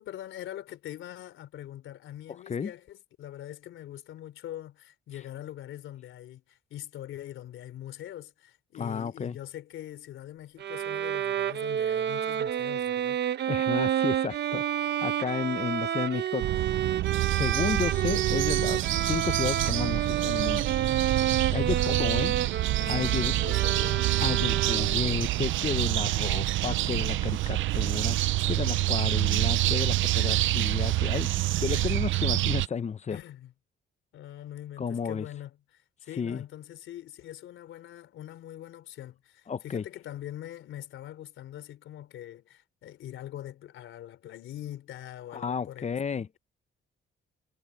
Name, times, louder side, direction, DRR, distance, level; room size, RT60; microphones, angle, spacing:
voice 1, 0.0-13.2 21.7-24.1 31.7-32.0 33.1-33.5 34.1-46.0, left 12 dB, 80° left, 3.6 m, -43 dB
voice 2, 8.8-9.4 13.5-16.5 17.3-20.7 21.5-22.3 22.9-23.3 24.2-28.2 28.5-31.3 31.6-33.2 34.8-35.3 36.2-36.4 39.5-39.8 45.3-46.3, left 6 dB, 35° left, 0.9 m, -32 dB
Bowed string instrument, 10.6-25.1, right 10 dB, 60° right, 0.9 m, -29 dB
sound 1, 16.4-32.7, right 16 dB, 80° right, 0.5 m, -27 dB
cardioid pair, 90°, 20 cm